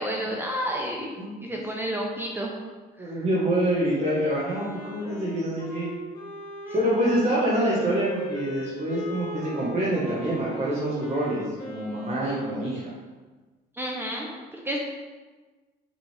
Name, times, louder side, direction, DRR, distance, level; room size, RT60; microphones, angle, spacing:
voice 1, 0.0-1.1 1.4-2.5 3.0-3.1 13.8-14.8, equal, 15° right, -1 dB, 0.9 m, -30 dB
voice 2, 1.2-1.6 3.0-5.9 6.7-12.9, right 1 dB, 40° right, -6 dB, 1.7 m, -26 dB
Wind instrument woodwind instrument, 3.9-12.7, equal, 60° left, 1.9 m, -38 dB
6.4 x 5.0 x 3.5 m, 1.3 s
cardioid pair, 110°, 17 cm